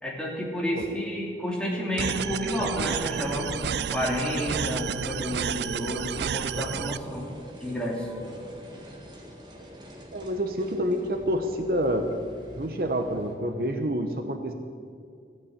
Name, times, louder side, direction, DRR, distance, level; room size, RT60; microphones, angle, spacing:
voice 1, 0.0-3.6 3.9-7.3 7.6-8.1, equal, 5° left, -4 dB, 2.9 m, -30 dB
sound 1, 2.0-7.0, right 7 dB, 70° right, 0.4 m, -31 dB
sound 2, 2.2-13.3, equal, 25° right, 1.7 m, -47 dB
voice 2, 10.1-12.1 12.5-14.5, equal, 55° right, 5 dB, 1.0 m, -28 dB
14.5 x 9.5 x 8.2 m, 2.4 s
head